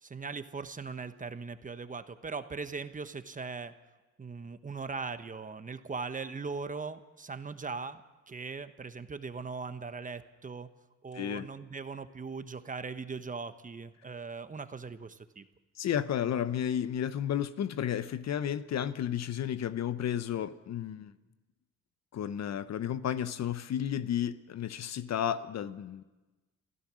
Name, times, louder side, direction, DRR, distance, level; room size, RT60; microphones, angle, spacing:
voice 1, 0.0-3.7 4.2-8.0 8.3-10.7 11.0-15.4, right 4 dB, 25° right, 10 dB, 1.1 m, -39 dB
voice 2, 11.1-11.5 15.7-21.1 22.1-26.0, left 9 dB, 60° left, 13 dB, 0.9 m, -32 dB
27.0 x 15.5 x 6.3 m, 1.2 s
cardioid pair, 90°, 30 cm